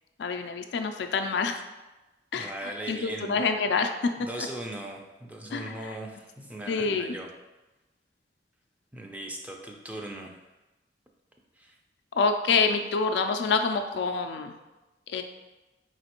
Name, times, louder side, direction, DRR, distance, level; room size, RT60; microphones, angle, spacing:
voice 1, 0.2-1.6 2.3-4.1 5.5-6.0 6.7-7.2 12.2-14.5 15.1-15.2, left 4 dB, 75° left, 6 dB, 0.3 m, -27 dB
voice 2, 2.3-3.4 4.3-7.3 8.9-10.3 11.6-11.7, right 1 dB, 10° right, 1 dB, 0.4 m, -39 dB
4.9 x 3.1 x 2.9 m, 1.1 s
head